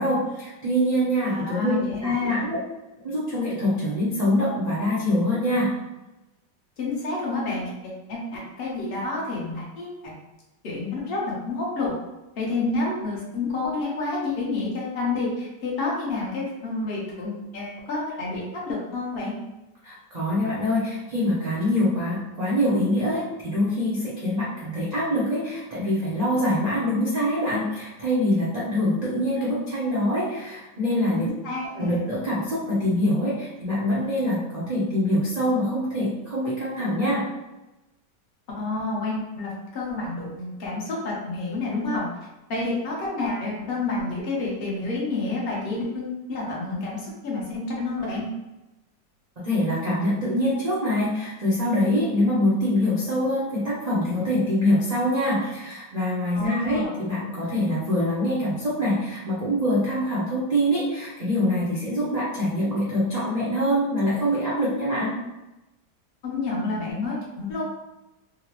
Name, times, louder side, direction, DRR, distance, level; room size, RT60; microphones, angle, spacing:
voice 1, 0.0-1.8 2.0-2.6 3.0-5.7 19.8-31.2 31.7-37.2 49.4-65.2, equal, 75° right, -9 dB, 0.3 m, -24 dB
voice 2, 1.2-2.5 6.8-10.1 10.6-11.9 12.4-19.4 31.1-32.0 38.5-42.1 42.5-48.3 56.3-56.9 66.2-67.6, left 3 dB, 45° left, -4 dB, 0.8 m, -29 dB
3.8 x 2.1 x 2.9 m, 1.0 s
omnidirectional pair, 1.9 m